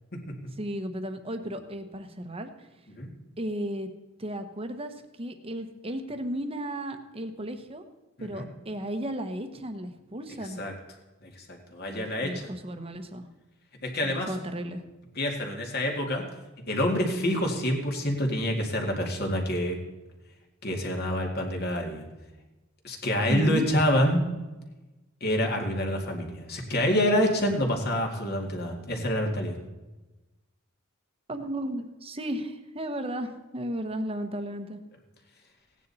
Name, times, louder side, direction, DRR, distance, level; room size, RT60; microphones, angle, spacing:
voice 1, 0.6-2.7 3.4-3.9 4.2-7.8 8.2-10.6 11.9-13.3 14.0-14.8 23.3-23.7 31.3-34.8, right 1 dB, 25° right, 8 dB, 1.1 m, -34 dB
voice 2, 11.2-12.5 13.8-14.3 15.2-16.3 16.7-19.8 20.6-22.1 22.8-24.2 25.2-29.6, equal, 50° left, 2 dB, 2.2 m, -27 dB
17.0 x 9.8 x 4.2 m, 1.1 s
head